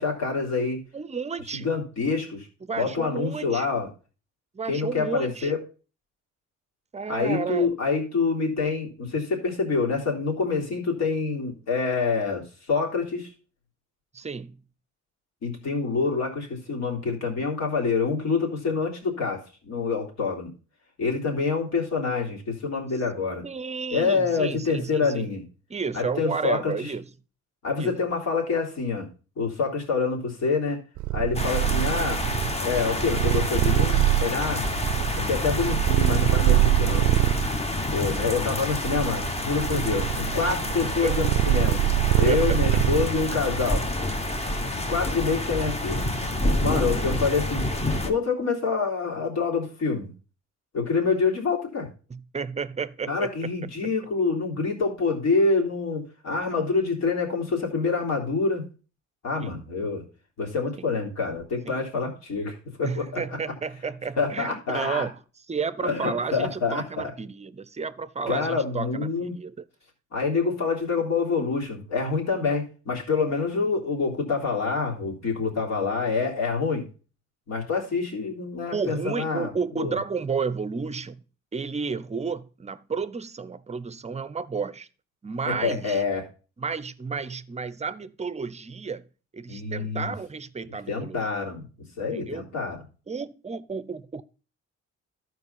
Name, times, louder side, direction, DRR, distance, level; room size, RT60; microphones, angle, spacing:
voice 1, 0.0-0.8 1.5-2.5 2.7-3.9 4.7-5.6 7.1-13.3 15.4-20.5 21.0-23.4 23.9-25.4 25.9-26.9 27.6-29.1 29.4-30.8 31.1-32.2 32.6-34.6 35.2-37.1 37.9-41.8 42.2-43.9 44.9-46.0 46.6-50.1 50.7-51.9 53.1-58.6 59.2-60.0 60.4-63.2 64.2-65.1 65.8-67.1 68.3-69.3 70.1-76.8 77.5-80.0 85.5-86.2 89.5-90.1 90.9-91.7 92.0-92.8, left 4 dB, 60° left, 3.4 m, -26 dB
voice 2, 0.9-1.7 2.6-3.7 4.5-5.5 6.9-7.7 14.1-14.6 23.4-25.3 25.7-27.0 27.8-28.0 39.7-39.9 41.0-41.1 42.3-42.6 52.1-53.5 59.4-59.6 61.7-61.8 62.8-65.2 65.5-69.5 73.3-73.7 78.7-81.2 81.5-84.9 85.2-86.0 86.6-89.1 89.3-91.2 92.1-92.4 93.1-94.2, right 5 dB, 20° right, 0.7 m, -32 dB
Purr, 31.0-37.5 38.2-43.4, right 17 dB, 75° right, 0.5 m, -24 dB
sound 1, 31.3-48.1, left 1 dB, 20° left, 1.3 m, -28 dB
12.5 x 4.8 x 5.7 m
cardioid pair, 90°, 30 cm